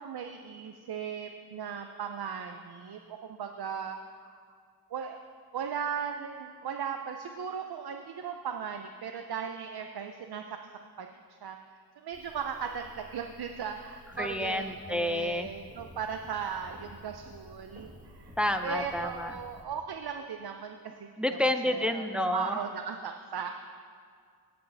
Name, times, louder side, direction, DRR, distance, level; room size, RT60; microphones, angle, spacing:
voice 1, 0.0-4.4 4.9-5.2 5.5-10.4 11.0-11.1 11.4-11.6 12.0-18.3 18.6-21.1 21.6-23.5, right 7 dB, 75° right, 5 dB, 0.6 m, -37 dB
sound 1, 12.1-19.6, equal, 20° right, 1.4 m, -52 dB
voice 2, 14.2-15.5 18.4-19.4 21.2-22.6, left 1 dB, 5° right, 7 dB, 0.4 m, -29 dB
17.0 x 7.8 x 3.4 m, 2.1 s
wide cardioid pair, 125°, 38 cm